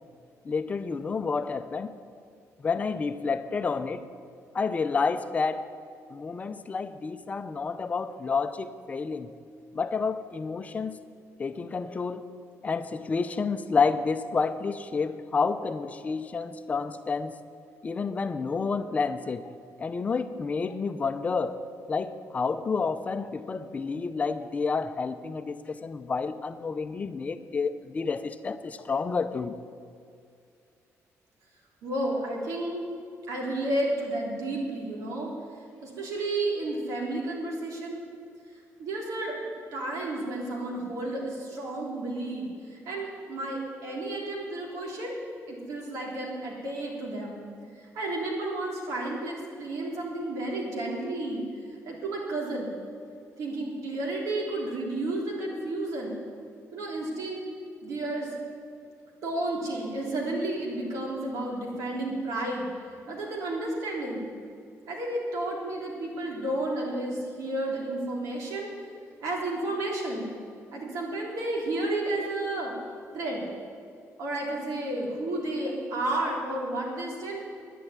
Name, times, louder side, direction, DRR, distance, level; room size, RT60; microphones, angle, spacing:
voice 1, 0.4-1.9 2.6-4.0 4.5-5.7 6.1-9.3 9.7-11.0 11.4-12.3 12.6-17.4 17.8-19.5 19.8-21.6 21.9-29.5, left 4 dB, 25° left, 11 dB, 0.6 m, -29 dB
voice 2, 31.8-32.9 33.3-35.3 35.8-38.0 38.8-39.4 39.7-45.1 45.5-47.4 47.7-51.4 51.9-52.7 53.4-56.2 56.7-57.4 57.8-58.3 59.2-62.7 63.1-64.2 64.9-68.7 69.2-70.3 70.7-72.7 73.1-73.4 74.2-77.4, right 2 dB, 75° right, -2 dB, 3.6 m, -32 dB
10.5 x 10.5 x 9.6 m, 2.3 s
cardioid pair, 150°, 6 cm